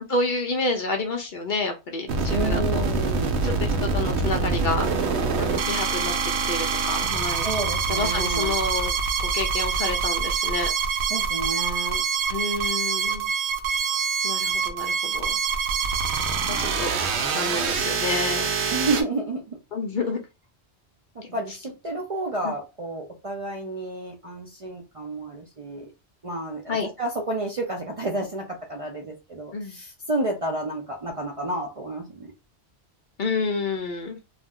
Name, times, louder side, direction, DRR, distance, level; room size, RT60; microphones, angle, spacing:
voice 1, 0.1-2.8 3.4-4.9 5.4-6.1 6.5-7.5 7.9-8.9 9.2-10.7 12.3-13.3 14.2-15.4 16.5-16.9 17.3-18.5 19.7-20.2 21.2-21.4 22.4-22.5 26.7-26.9 29.5-29.8 33.2-34.2, left 3 dB, 55° left, 0.6 m, -29 dB
sound 1, 2.1-19.0, right 5 dB, 80° right, 0.9 m, -25 dB
voice 2, 2.3-3.4 7.4-8.5 11.1-12.0 18.7-19.6 21.1-25.9 26.2-32.3, right 2 dB, 45° right, 0.4 m, -30 dB
2.4 x 2.1 x 3.5 m
omnidirectional pair, 1.1 m